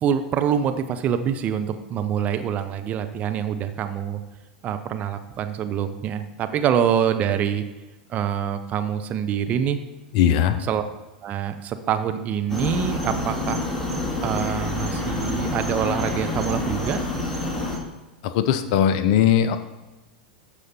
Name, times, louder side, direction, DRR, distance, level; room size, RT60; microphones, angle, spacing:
voice 1, 0.0-4.2 4.6-7.6 8.1-9.8 10.7-10.8 11.2-13.7 14.2-17.0, right 8 dB, 30° right, 8 dB, 0.8 m, -25 dB
voice 2, 10.1-10.6 18.2-19.6, left 9 dB, 50° left, 10 dB, 0.7 m, -19 dB
sound 1, 12.5-17.8, left 2 dB, 10° left, 2.1 m, -27 dB
13.5 x 5.0 x 4.3 m, 1.1 s
figure-of-eight pair, 90°, 5 cm